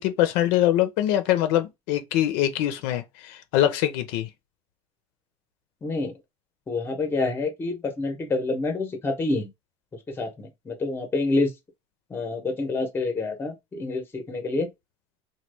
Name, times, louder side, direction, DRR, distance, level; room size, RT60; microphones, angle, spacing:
voice 1, 0.0-4.3, left 12 dB, 70° left, 0.6 m, -23 dB
voice 2, 5.8-6.1 6.7-9.5 9.9-11.5 12.1-14.7, left 3 dB, 15° left, 0.8 m, -27 dB
3.0 x 2.2 x 3.3 m
cardioid pair, 160°, 14 cm